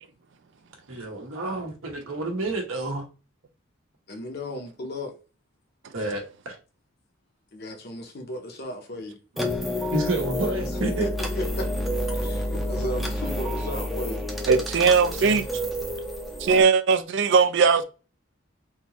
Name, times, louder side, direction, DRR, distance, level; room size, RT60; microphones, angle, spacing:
voice 1, 0.9-3.0 5.9-6.6 9.9-11.1 15.2-15.9, right 2 dB, 90° right, 1.2 m, -30 dB
voice 2, 4.1-5.1 7.5-9.2 11.0-11.7 12.2-14.2, left 1 dB, 55° left, 0.7 m, -34 dB
sound 1, 9.4-16.6, left 1 dB, ahead, 0.5 m, -29 dB
voice 3, 14.5-15.5 16.4-17.8, right 5 dB, 65° right, 0.4 m, -19 dB
3.7 x 2.6 x 3.0 m
head